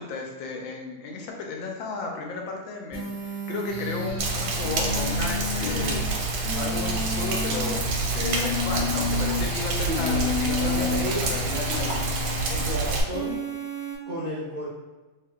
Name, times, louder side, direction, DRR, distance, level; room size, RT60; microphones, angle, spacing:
voice 1, 0.0-6.1 6.5-12.0, left 4 dB, 75° left, 1 dB, 1.3 m, -34 dB
sound 1, 2.9-4.1 4.6-6.0 6.4-7.8 8.2-9.4 9.9-11.0 11.5-12.6 13.1-13.9, left 3 dB, 20° left, 1.0 m, -31 dB
Mechanical fan, 3.7-12.7, left 3 dB, 55° left, 1.2 m, -35 dB
Rain, 4.2-13.0, right 4 dB, 90° right, 1.4 m, -28 dB
voice 2, 5.6-6.0 9.7-10.3 10.6-11.4 11.7-11.9 12.5-13.4 14.1-14.7, equal, 60° right, -8 dB, 0.5 m, -33 dB
3.0 x 2.8 x 3.4 m, 1.2 s
omnidirectional pair, 2.2 m